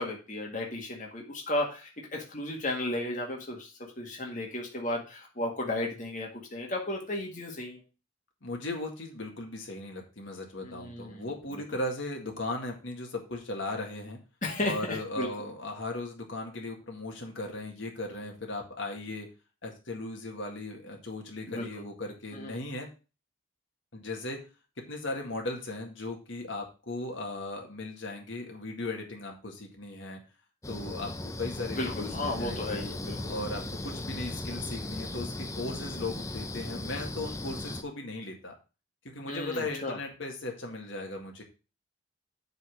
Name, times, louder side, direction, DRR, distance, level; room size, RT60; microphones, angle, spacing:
voice 1, 0.0-7.8 10.6-11.3 14.4-15.3 21.5-21.7 22.3-22.7 31.7-33.3 39.3-40.0, left 2 dB, 35° left, -1 dB, 1.8 m, -34 dB
voice 2, 8.4-14.2 14.6-19.3 19.6-22.9 23.9-24.4 24.9-30.2 30.7-32.8 33.3-38.6 39.1-41.4, left 2 dB, 65° left, 1 dB, 1.9 m, -37 dB
sound 1, 30.6-37.8, left 2 dB, 15° left, 0.5 m, -37 dB
8.2 x 4.2 x 6.2 m, 0.32 s
head